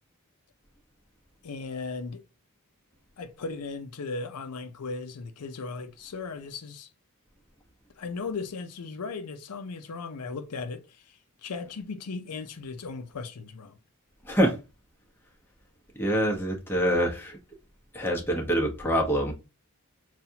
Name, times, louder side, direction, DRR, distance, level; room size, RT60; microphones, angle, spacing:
voice 1, 1.4-2.2 3.2-6.9 8.0-13.7, left 4 dB, 90° left, 0.6 m, -37 dB
voice 2, 14.2-14.6 15.9-17.4 17.9-19.3, equal, 10° left, 1.0 m, -25 dB
5.6 x 2.4 x 2.8 m
head